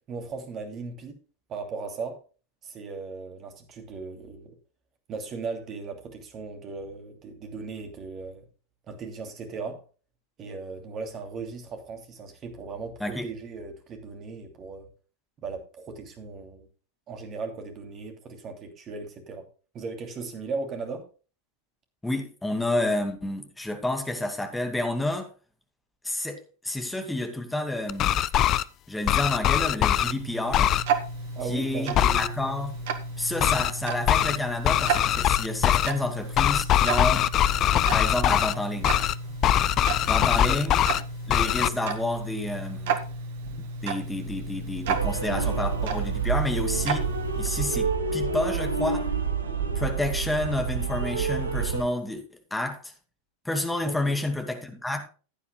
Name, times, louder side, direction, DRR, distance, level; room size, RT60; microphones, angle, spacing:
voice 1, 0.1-1.2 1.5-2.2 2.6-4.5 5.1-8.4 8.9-9.8 10.4-14.9 15.4-16.7 17.1-19.4 19.7-21.1 31.4-32.3 40.4-40.6 53.8-54.2, right 4 dB, 30° right, 2.8 m, -37 dB
voice 2, 22.0-25.3 26.0-28.2 28.9-30.7 31.5-32.7 33.2-37.3 37.9-38.9 40.1-40.8 41.3-43.0 43.8-47.1 47.4-49.1 49.8-52.2 52.5-52.9 53.4-55.1, left 1 dB, 5° left, 2.4 m, -30 dB
sound 1, 27.9-28.6 29.1-30.1 30.5-30.8 31.9-32.3 33.4-33.7 34.1-34.4 34.6-35.9 36.3-38.5 38.8-39.1 39.4-41.0 41.3-41.7, left 12 dB, 35° left, 0.5 m, -22 dB
Tick-tock, 29.6-47.9, right 4 dB, 55° right, 1.7 m, -33 dB
sound 2, 44.8-51.8, right 5 dB, 75° right, 1.6 m, -28 dB
15.5 x 9.8 x 2.3 m
figure-of-eight pair, 90°, 0 cm